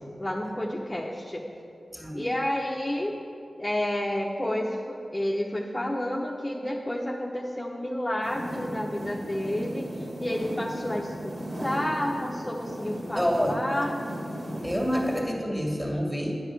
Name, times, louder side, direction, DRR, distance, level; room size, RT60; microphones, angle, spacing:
voice 1, 0.2-1.4 2.1-3.1 3.6-14.0 14.9-15.0, left 1 dB, 20° left, -1 dB, 0.8 m, -30 dB
voice 2, 1.9-2.3 13.1-13.9 14.6-16.4, equal, 5° right, 0 dB, 2.0 m, -28 dB
sound 1, 8.2-15.2, equal, 50° right, 2.3 m, -36 dB
9.8 x 4.8 x 7.7 m, 2.7 s
cardioid pair, 50°, 0 cm